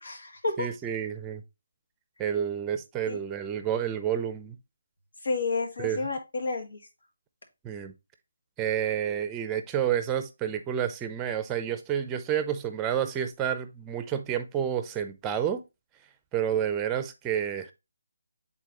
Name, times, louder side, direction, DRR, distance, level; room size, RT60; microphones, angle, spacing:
voice 1, 0.0-0.7 3.1-3.2 5.2-6.8, left 3 dB, 65° left, 2.0 m, -30 dB
voice 2, 0.6-1.4 2.2-4.6 5.8-6.0 7.6-7.9 8.6-15.6 16.3-17.7, right 9 dB, 15° right, 0.6 m, -29 dB
8.1 x 4.0 x 3.0 m
figure-of-eight pair, 160°, 0 cm